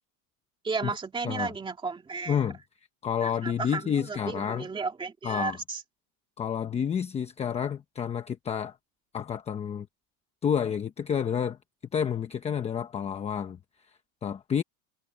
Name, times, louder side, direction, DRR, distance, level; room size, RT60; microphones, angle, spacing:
voice 1, 0.6-2.4 3.2-5.8, right 4 dB, 10° right, 2.2 m, -33 dB
voice 2, 2.3-2.6 3.0-4.7 5.2-5.6 6.4-8.8 9.1-9.9 10.4-11.6 11.9-13.6 14.2-14.6, left 8 dB, 15° left, 0.9 m, -29 dB
supercardioid pair, 160°, 42 cm